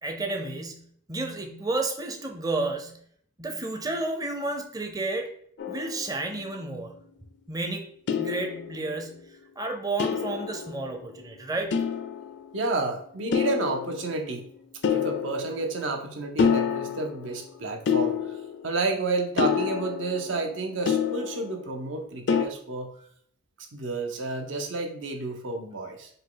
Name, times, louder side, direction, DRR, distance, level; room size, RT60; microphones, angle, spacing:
voice 1, 0.0-3.0 3.4-5.3 5.7-7.0 7.5-9.2 9.6-11.8, right 2 dB, 20° right, 4 dB, 0.6 m, -31 dB
sound 1, 5.6-6.6 8.1-9.1 10.0-11.2 11.7-12.6 13.3-14.3 14.8-16.1 16.4-17.4 17.9-18.9 19.4-21.8 22.3-22.4, left 7 dB, 65° left, 0.5 m, -28 dB
voice 2, 12.5-14.5 14.9-18.4 18.6-22.9 23.7-26.1, right 3 dB, 75° right, 3 dB, 0.8 m, -30 dB
5.2 x 2.3 x 3.9 m, 0.62 s
head